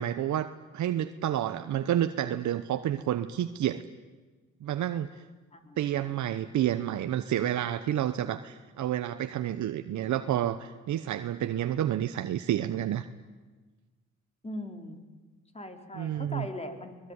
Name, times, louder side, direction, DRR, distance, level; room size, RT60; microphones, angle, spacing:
voice 1, 0.0-3.8 4.6-5.2 5.8-13.0 15.9-16.5, right 11 dB, 70° right, 9 dB, 1.0 m, -30 dB
voice 2, 5.5-6.4 14.4-15.0 15.5-17.0, left 1 dB, 20° left, 6 dB, 3.7 m, -40 dB
24.5 x 20.0 x 9.7 m, 1.3 s
cardioid pair, 90°, 30 cm